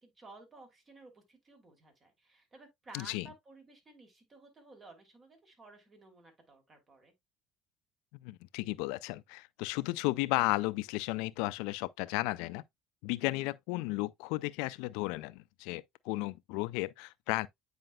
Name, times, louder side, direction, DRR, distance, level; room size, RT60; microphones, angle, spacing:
voice 1, 0.0-7.1, right 2 dB, 35° right, 3.0 m, -55 dB
voice 2, 2.9-3.3 8.2-12.6 13.0-17.5, left 21 dB, 75° left, 0.4 m, -34 dB
9.0 x 5.0 x 2.3 m
hypercardioid pair, 65°, 0 cm